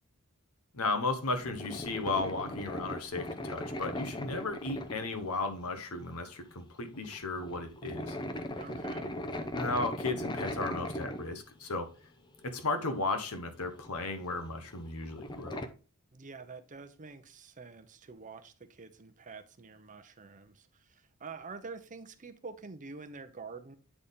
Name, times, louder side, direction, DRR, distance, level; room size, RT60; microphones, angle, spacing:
voice 1, 0.7-8.2 9.5-11.9 12.4-15.6, left 3 dB, 75° left, 1.2 m, -35 dB
sound 1, 1.2-6.0 6.3-6.5 6.8-11.9 12.4-12.5 13.5-15.7, left 1 dB, 20° left, 0.6 m, -39 dB
voice 2, 8.6-9.1 16.1-23.8, right 4 dB, 35° right, 0.7 m, -47 dB
8.7 x 4.1 x 3.6 m
head